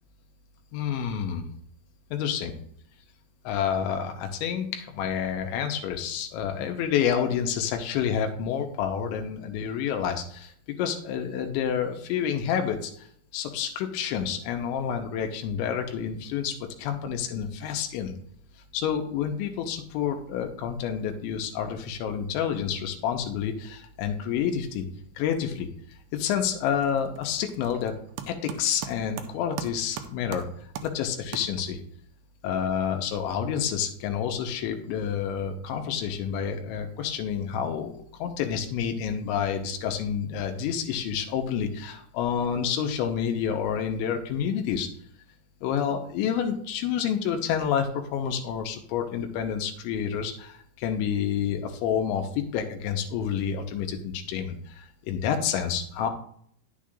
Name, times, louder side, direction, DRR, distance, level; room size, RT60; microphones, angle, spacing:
voice 1, 0.7-1.5 2.1-2.5 3.5-10.5 10.8-12.9 13.3-18.1 18.7-24.9 25.2-25.7 26.1-27.9 28.3-30.5 30.8-31.8 32.4-37.9 38.2-44.9 45.6-56.1, left 8 dB, 85° left, 4 dB, 3.1 m, -29 dB
sound 1, 25.4-25.8 26.1-32.0, right 8 dB, 80° right, 2.5 m, -41 dB
10.0 x 7.4 x 2.4 m, 0.64 s
omnidirectional pair, 5.3 m